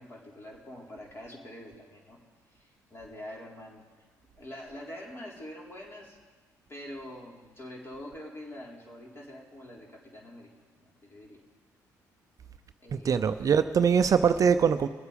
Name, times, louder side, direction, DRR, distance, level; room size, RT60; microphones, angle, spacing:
voice 1, 0.0-2.2 2.5-3.8 4.4-6.2 6.7-10.5 11.0-11.4 12.8-13.2, left 1 dB, 30° left, -2 dB, 4.0 m, -45 dB
voice 2, 13.0-14.9, right 6 dB, 45° right, 11 dB, 0.5 m, -22 dB
22.5 x 8.1 x 5.2 m, 1.3 s
hypercardioid pair, 60°, 8 cm